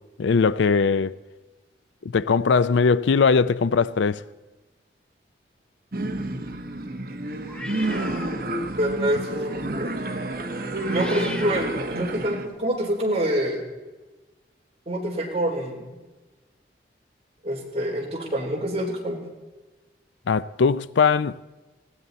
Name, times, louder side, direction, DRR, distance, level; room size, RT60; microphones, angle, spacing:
voice 1, 0.2-1.2 2.0-4.2 20.3-21.4, left 5 dB, 90° left, 0.4 m, -20 dB
sound 1, 5.9-12.5, right 2 dB, 55° right, 1.2 m, -30 dB
sound 2, 7.5-8.7 9.1-9.4 10.5-12.4, left 1 dB, 5° left, 1.0 m, -39 dB
voice 2, 8.8-10.2 10.9-13.6 14.9-15.9 17.4-19.2, right 1 dB, 35° right, 3.7 m, -26 dB
20.0 x 16.5 x 4.1 m
head